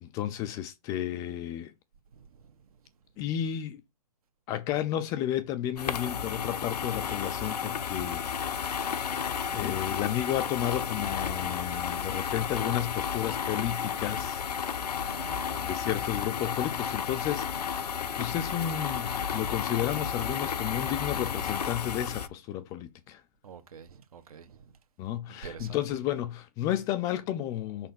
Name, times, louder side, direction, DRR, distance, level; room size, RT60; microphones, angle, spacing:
voice 1, 0.0-1.7 3.2-3.8 4.5-9.1 9.5-14.5 15.2-23.2 25.0-27.9, left 12 dB, 15° left, 0.4 m, -32 dB
voice 2, 2.1-2.5 15.1-16.0 23.4-24.7 25.3-25.8, right 7 dB, 65° right, 1.3 m, -47 dB
sound 1, 5.8-22.3, left 7 dB, 80° left, 0.8 m, -32 dB
5.7 x 4.2 x 5.6 m
hypercardioid pair, 145°, 20 cm